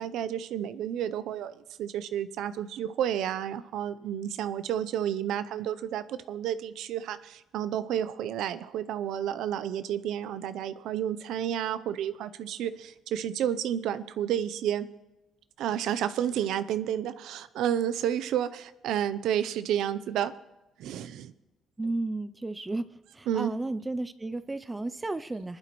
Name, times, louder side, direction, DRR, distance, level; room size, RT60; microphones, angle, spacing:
voice 1, 0.0-14.9 15.6-20.3 20.8-21.3 23.3-23.5, right 10 dB, 80° right, 13 dB, 0.6 m, -31 dB
voice 2, 21.8-22.8 23.1-25.6, right 2 dB, 15° right, 13 dB, 0.4 m, -33 dB
23.5 x 11.5 x 3.1 m, 1.0 s
cardioid pair, 155°, 0 cm